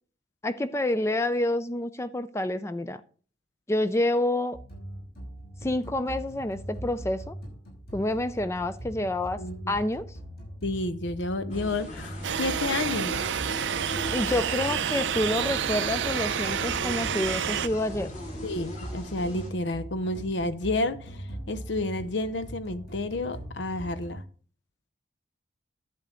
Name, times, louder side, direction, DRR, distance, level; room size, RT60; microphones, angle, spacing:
voice 1, 0.4-3.0 3.7-4.6 5.6-7.3 7.9-9.4 9.7-10.1 14.1-18.1, left 1 dB, 15° left, 0.4 m, -28 dB
sound 1, 4.5-24.2, equal, 55° left, 5.6 m, -41 dB
voice 2, 9.4-9.7 10.6-13.2 18.4-24.2, left 2 dB, 70° left, 0.7 m, -30 dB
sound 2, 11.5-19.5, left 1 dB, 40° left, 2.6 m, -40 dB
sound 3, 12.2-17.7, right 8 dB, 75° right, 0.5 m, -29 dB
11.0 x 7.7 x 3.7 m
head